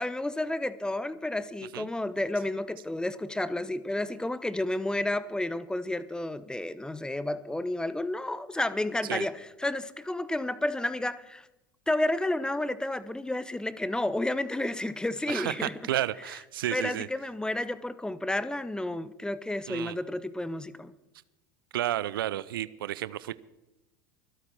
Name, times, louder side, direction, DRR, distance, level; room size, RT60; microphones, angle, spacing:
voice 1, 0.0-11.5 11.9-15.8 16.7-20.9, left 1 dB, 5° left, 15 dB, 0.9 m, -31 dB
voice 2, 15.3-17.1 19.7-20.0 21.7-23.4, right 13 dB, 75° right, 18 dB, 0.5 m, -32 dB
24.5 x 8.3 x 4.6 m, 0.93 s
hypercardioid pair, 80°, 12 cm